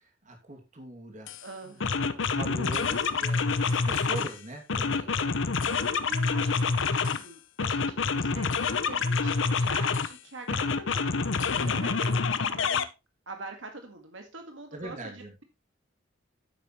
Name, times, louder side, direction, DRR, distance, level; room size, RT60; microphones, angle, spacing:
voice 1, 0.2-1.3 2.2-5.1 14.7-15.3, right 2 dB, 40° right, 3 dB, 2.5 m, -41 dB
sound 1, 1.3-1.4 1.8-4.3 4.7-7.2 7.6-10.1 10.5-12.8, left 4 dB, 75° left, 0.8 m, -27 dB
voice 2, 1.4-2.3 5.0-12.9 13.3-15.4, right 2 dB, 80° right, 5 dB, 1.9 m, -45 dB
10.0 x 8.7 x 3.1 m, 0.26 s
head